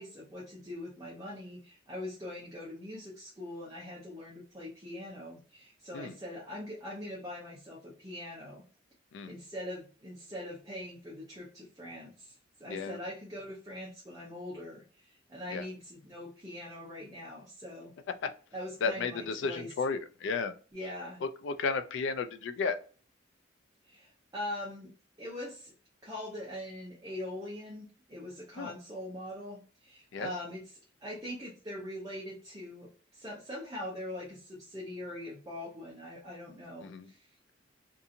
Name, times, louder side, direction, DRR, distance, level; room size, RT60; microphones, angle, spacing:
voice 1, 0.0-8.6 9.2-12.3 12.6-17.9 18.5-19.7 20.7-21.2 23.9-24.9 25.2-25.7 26.0-30.6 31.0-37.3, left 1 dB, 20° right, -4 dB, 0.6 m, -42 dB
voice 2, 12.7-13.0 15.5-15.7 18.2-18.3 18.8-20.6 21.2-22.8 28.6-28.7 30.1-30.3 36.8-37.1, left 4 dB, 70° left, 10 dB, 0.3 m, -33 dB
2.7 x 2.5 x 2.5 m, 0.39 s
head